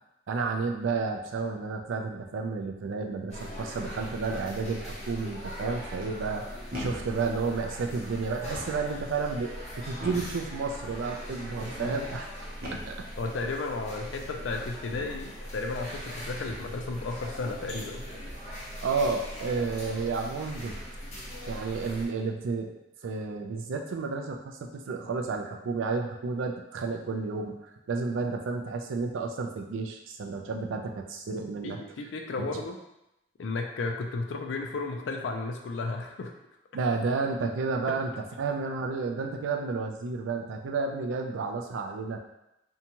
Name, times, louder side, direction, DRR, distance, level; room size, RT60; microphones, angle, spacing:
voice 1, 0.3-6.4 6.8-9.5 9.8-12.3 12.6-13.1 18.8-20.8 21.5-22.7 23.0-27.6 27.9-31.8 36.7-38.1 38.4-42.2, right 4 dB, 90° right, 3 dB, 0.4 m, -31 dB
sound 1, 3.3-22.1, equal, 35° left, 0.6 m, -40 dB
sound 2, 4.0-4.5 6.0-6.4 6.7-7.2 8.3-8.9 10.0-10.4 11.2-11.7 12.6-13.0 14.0-14.3 14.9-15.2 16.4-16.8 18.9-19.0 19.8-20.2 20.6-21.0, left 1 dB, 50° right, 0.7 m, -42 dB
voice 2, 13.2-18.1 31.6-32.8 33.4-36.3 37.9-38.0, left 3 dB, 75° left, 3 dB, 0.4 m, -34 dB
2.7 x 2.2 x 2.8 m, 0.88 s
head